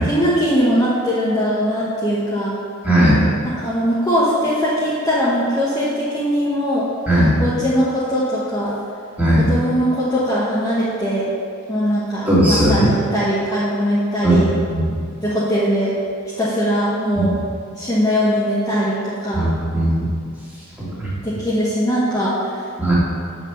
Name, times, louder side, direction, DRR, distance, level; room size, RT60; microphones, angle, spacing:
voice 1, 0.0-2.5 3.4-6.9 7.4-8.7 9.4-11.3 11.7-14.5 15.2-15.9 16.4-17.4 17.8-19.5 21.2-22.4, equal, 15° left, -9 dB, 1.2 m, -20 dB
voice 2, 2.8-3.2 7.1-7.3 9.2-9.4 12.3-12.9 14.2-14.4 14.7-14.9 17.2-17.3 19.3-20.1 20.8-21.1 22.8-22.9, right 1 dB, 5° right, -8 dB, 2.2 m, -17 dB
7.7 x 5.5 x 6.7 m, 2.3 s
head